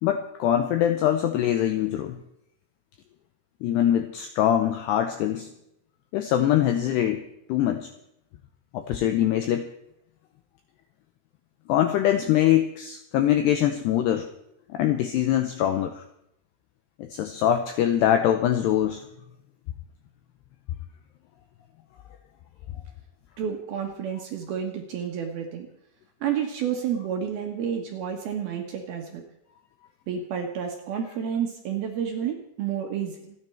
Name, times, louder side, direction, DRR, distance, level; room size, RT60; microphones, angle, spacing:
voice 1, 0.0-2.2 3.6-5.5 6.1-7.2 7.5-7.9 8.7-9.7 11.7-14.3 14.7-16.0 17.0-19.1, left 11 dB, 85° left, 7 dB, 2.4 m, -23 dB
voice 2, 23.4-25.7 26.2-29.2 30.1-33.4, right 8 dB, 70° right, 3 dB, 2.6 m, -30 dB
27.5 x 9.7 x 4.5 m, 0.79 s
omnidirectional pair, 5.9 m